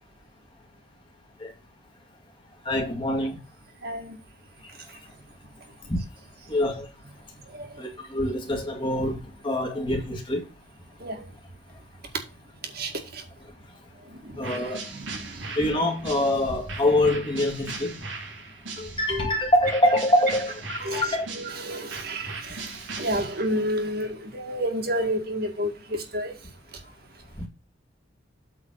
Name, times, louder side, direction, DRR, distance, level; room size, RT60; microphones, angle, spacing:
voice 1, 2.6-3.4 4.9-5.0 5.9-6.0 6.5-6.9 7.8-10.5 14.3-14.9 15.5-18.0 18.8-21.3 27.3-27.5, left 1 dB, 25° left, 2.3 m, -25 dB
voice 2, 3.8-4.2 7.5-7.7 11.0-11.3 12.7-13.2 14.2-14.6 14.9-15.5 19.1-19.4 20.8-26.3, equal, 50° right, 2.0 m, -30 dB
sound 1, 14.4-19.2 19.6-23.6, right 3 dB, 90° right, 3.2 m, -39 dB
8.6 x 4.2 x 6.3 m
head